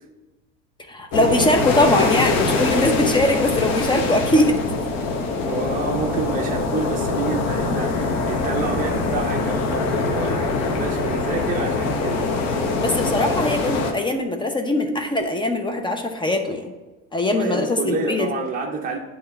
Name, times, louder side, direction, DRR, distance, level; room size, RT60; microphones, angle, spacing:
voice 1, 0.9-4.6 12.8-16.7 17.1-18.3, left 1 dB, 15° left, 5 dB, 0.6 m, -21 dB
sound 1, 1.1-13.9, left 3 dB, 60° left, 1.0 m, -23 dB
voice 2, 5.3-12.3 17.3-19.0, right 4 dB, 25° right, 0 dB, 0.7 m, -28 dB
8.3 x 3.1 x 5.4 m, 1.2 s
supercardioid pair, 120°, 30 cm